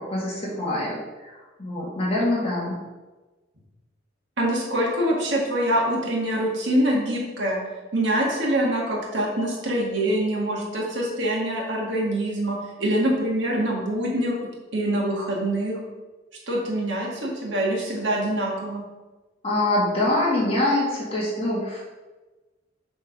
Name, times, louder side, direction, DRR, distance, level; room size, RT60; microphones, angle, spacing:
voice 1, 0.0-2.8 19.4-21.8, left 1 dB, 30° left, -5 dB, 2.0 m, -25 dB
voice 2, 4.4-7.6 7.9-14.4 14.7-15.8 16.5-18.8, right 1 dB, 70° right, -3 dB, 1.9 m, -24 dB
7.1 x 3.8 x 5.0 m, 1.2 s
head